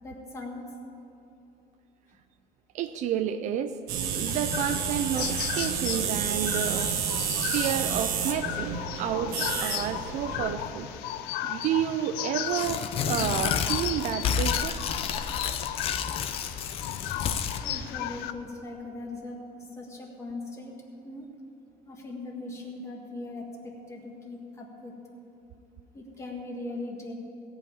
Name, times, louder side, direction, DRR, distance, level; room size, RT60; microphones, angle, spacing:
voice 1, 0.0-0.7 17.5-20.8 21.0-21.3 21.8-25.0 25.9-27.1, left 2 dB, 20° left, 0 dB, 1.6 m, -40 dB
voice 2, 2.7-3.8 4.1-6.9 7.5-10.9 11.5-14.8, right 9 dB, 50° right, 10 dB, 0.4 m, -30 dB
sound 1, 3.9-10.6, right 7 dB, 70° right, 1.1 m, -30 dB
sound 2, 4.3-18.3, left 12 dB, 80° left, 0.6 m, -35 dB
Tearing, 12.5-17.6, left 7 dB, 35° left, 0.6 m, -30 dB
17.0 x 5.7 x 8.6 m, 2.9 s
cardioid pair, 175°, 16 cm